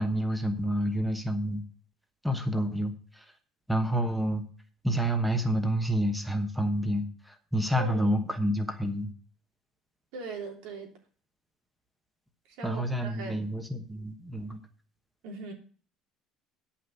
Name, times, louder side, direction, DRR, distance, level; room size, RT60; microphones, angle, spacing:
voice 1, 0.0-1.6 2.2-3.2 3.7-4.4 4.8-9.1 12.6-14.6, right 1 dB, ahead, 6 dB, 1.1 m, -29 dB
voice 2, 7.8-8.2 10.1-10.9 12.5-13.4 15.2-15.5, right 3 dB, 85° right, 2 dB, 3.2 m, -40 dB
9.7 x 5.8 x 7.9 m, 0.43 s
cardioid pair, 155°, 0 cm